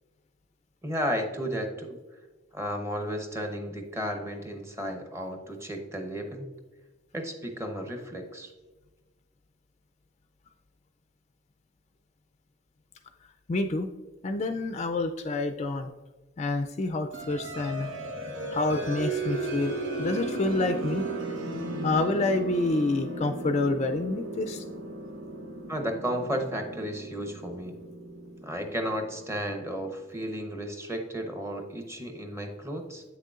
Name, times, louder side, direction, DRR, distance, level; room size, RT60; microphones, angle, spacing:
voice 1, 0.8-2.0 2.5-6.4 7.1-8.5 25.7-27.8 28.4-33.0, equal, 15° right, 4 dB, 0.9 m, -33 dB
voice 2, 13.5-13.9 14.2-15.9 16.4-17.9 18.5-21.1 21.8-24.6, left 2 dB, 35° left, 7 dB, 0.4 m, -28 dB
sound 1, 17.1-29.6, right 2 dB, 85° right, 1.1 m, -35 dB
8.2 x 6.5 x 2.4 m, 1.2 s
head